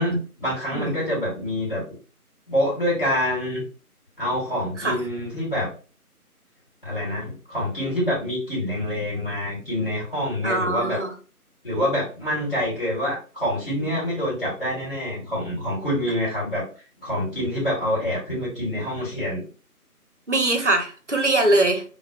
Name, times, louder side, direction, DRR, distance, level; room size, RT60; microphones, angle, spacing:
voice 1, 0.0-1.8 2.5-3.6 4.2-5.7 6.8-11.0 11.6-16.6 17.0-19.4, left 1 dB, 40° left, -5 dB, 1.4 m, -26 dB
voice 2, 0.7-1.0 4.8-5.0 10.4-11.1 20.3-21.8, right 2 dB, 55° right, 5 dB, 0.5 m, -22 dB
2.5 x 2.0 x 2.4 m, 0.37 s
figure-of-eight pair, 170°, 46 cm